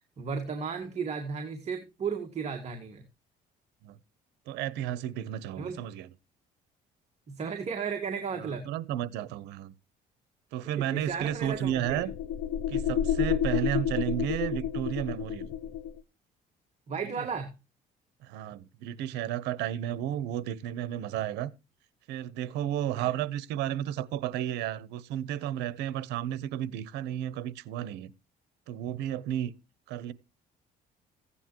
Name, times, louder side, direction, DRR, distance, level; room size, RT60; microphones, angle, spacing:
voice 1, 0.2-3.0 5.6-5.8 7.3-8.7 10.7-12.0 16.9-17.5 22.9-23.1, right 6 dB, 40° right, 2.0 m, -34 dB
voice 2, 4.5-6.1 8.4-9.7 10.5-12.1 12.7-15.5 17.2-17.3 18.2-21.5 22.1-28.1 28.7-29.5 29.9-30.1, right 11 dB, 90° right, 0.9 m, -32 dB
sound 1, 11.0-16.0, left 9 dB, 75° left, 0.8 m, -30 dB
15.5 x 9.9 x 3.0 m
cardioid pair, 110°, 17 cm